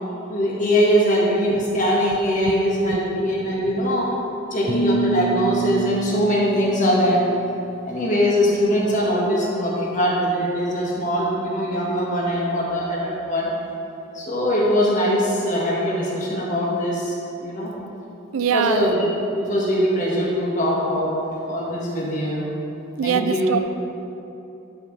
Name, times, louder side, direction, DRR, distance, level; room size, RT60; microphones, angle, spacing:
voice 1, 0.2-4.1 4.5-7.2 7.8-13.5 14.1-17.1 17.4-17.7 18.5-19.1 19.3-21.1 21.5-22.5 23.0-23.6, equal, 40° left, -5 dB, 1.7 m, -21 dB
sound 1, 4.7-7.8, right 3 dB, 20° left, 0.5 m, -27 dB
voice 2, 18.3-18.9 23.0-23.6, right 7 dB, 85° right, 11 dB, 0.4 m, -22 dB
11.5 x 6.0 x 3.3 m, 2.9 s
head